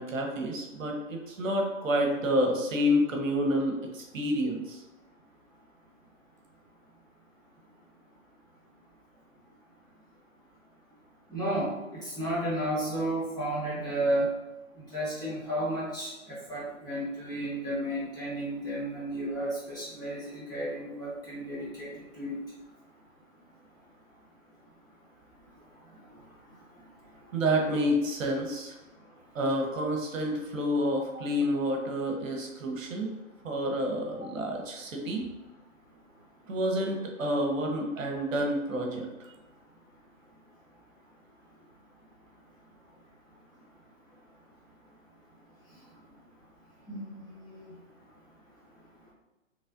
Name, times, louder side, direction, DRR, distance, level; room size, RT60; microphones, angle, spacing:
voice 1, 0.0-4.8 27.3-28.7 29.3-33.1 33.4-35.3 36.5-39.1, equal, 70° right, 1 dB, 1.0 m, -29 dB
voice 2, 11.3-14.3 14.8-22.4 46.9-47.0 47.4-47.6, right 1 dB, 10° left, -10 dB, 1.2 m, -32 dB
4.1 x 3.2 x 2.5 m, 1.0 s
hypercardioid pair, 145°, 40 cm